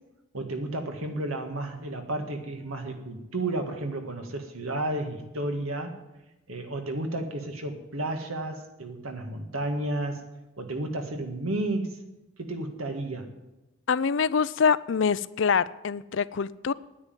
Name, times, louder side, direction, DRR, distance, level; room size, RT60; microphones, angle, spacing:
voice 1, 0.3-6.0 6.5-10.2 10.6-12.0 12.4-13.3, right 1 dB, 90° right, 5 dB, 1.9 m, -32 dB
voice 2, 13.9-16.7, left 6 dB, 60° left, 18 dB, 0.4 m, -25 dB
9.9 x 9.6 x 9.1 m, 0.99 s
head